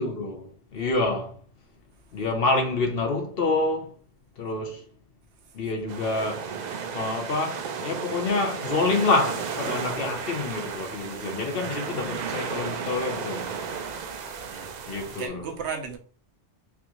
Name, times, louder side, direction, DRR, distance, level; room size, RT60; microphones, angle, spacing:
voice 1, 0.0-1.4 2.1-3.9 4.4-4.8 5.5-6.5 6.9-13.5 14.9-15.5, left 3 dB, 60° left, 1.0 m, -27 dB
sound 1, 5.9-15.3, right 6 dB, 55° right, 0.5 m, -34 dB
voice 2, 9.8-10.1 11.0-11.7 14.5-16.0, right 5 dB, 75° right, 1.0 m, -37 dB
4.7 x 2.5 x 2.9 m
omnidirectional pair, 1.2 m